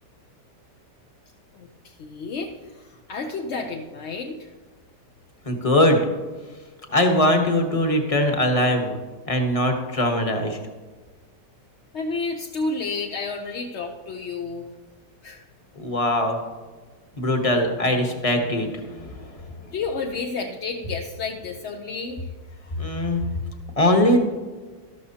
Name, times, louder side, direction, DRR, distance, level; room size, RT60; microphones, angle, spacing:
voice 1, 1.6-2.5 2.8-4.5 11.9-14.7 15.2-15.4 19.7-22.3, left 4 dB, 60° left, 2 dB, 0.7 m, -31 dB
voice 2, 5.4-6.0 6.9-9.0 9.3-10.6 15.8-16.4 17.2-19.4 22.8-23.2 23.8-24.2, left 1 dB, 20° left, 4 dB, 1.1 m, -21 dB
13.0 x 12.5 x 2.8 m, 1.3 s
omnidirectional pair, 1.9 m